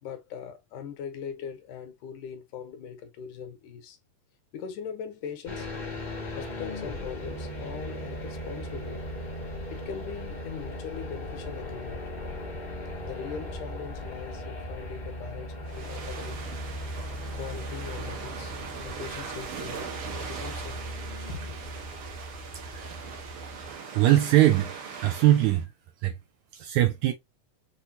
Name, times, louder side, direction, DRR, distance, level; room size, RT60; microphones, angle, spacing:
voice 1, 0.0-4.0 4.5-5.7 6.4-9.0 9.7-12.0 13.0-16.4 16.9-17.1 17.3-18.6 18.8-20.8 21.3-21.6, left 7 dB, 75° left, 2.4 m, -40 dB
sound 1, 5.5-23.7, left 1 dB, 35° left, 0.7 m, -38 dB
sound 2, 15.7-25.6, right 6 dB, 60° right, 1.5 m, -40 dB
voice 2, 23.9-24.7 25.0-25.7 26.0-26.2 26.5-27.1, right 14 dB, 80° right, 1.7 m, -21 dB
6.3 x 2.7 x 2.7 m
omnidirectional pair, 3.7 m